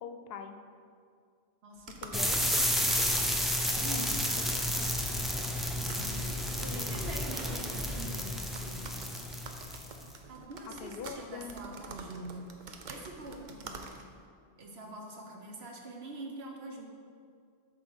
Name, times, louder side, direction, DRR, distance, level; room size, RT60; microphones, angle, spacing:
voice 1, 0.0-0.6 2.0-2.4 3.9-5.2 6.7-7.0 10.8-11.7, left 6 dB, 75° left, 7 dB, 0.8 m, -44 dB
voice 2, 1.6-2.9 3.6-4.1 5.8-8.8 10.3-12.4 12.9-13.9 14.6-16.9, right 2 dB, 85° right, 1 dB, 1.3 m, -45 dB
sound 1, 1.8-14.3, right 4 dB, 55° right, 0.7 m, -49 dB
sound 2, 2.1-10.0, equal, ahead, 0.4 m, -31 dB
7.7 x 4.1 x 6.1 m, 2.2 s
omnidirectional pair, 1.0 m